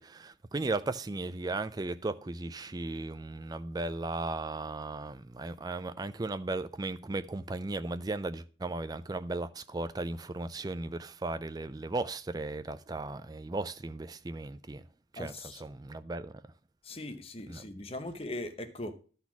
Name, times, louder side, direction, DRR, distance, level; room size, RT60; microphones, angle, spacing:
voice 1, 0.0-14.9 15.1-16.4 17.5-17.6, right 2 dB, 20° right, 0.3 m, -36 dB
voice 2, 15.2-15.6 16.8-18.9, left 1 dB, 30° left, 0.8 m, -40 dB
12.0 x 4.1 x 5.9 m
head